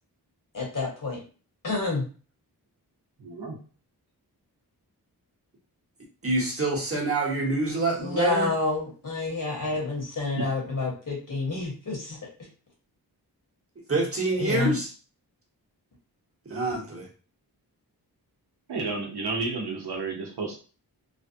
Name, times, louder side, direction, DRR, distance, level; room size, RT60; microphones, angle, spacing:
voice 1, 0.5-1.2 1.6-2.1 8.0-12.3 14.4-14.7, left 3 dB, 50° left, -1 dB, 1.6 m, -29 dB
voice 2, 3.2-3.6 10.4-10.5 18.7-20.6, right 4 dB, 75° right, 0 dB, 1.0 m, -31 dB
voice 3, 6.2-8.5 13.9-14.9 16.5-17.1, right 2 dB, 35° right, -3 dB, 1.2 m, -26 dB
3.2 x 2.2 x 2.7 m, 0.37 s
cardioid pair, 60°, 40 cm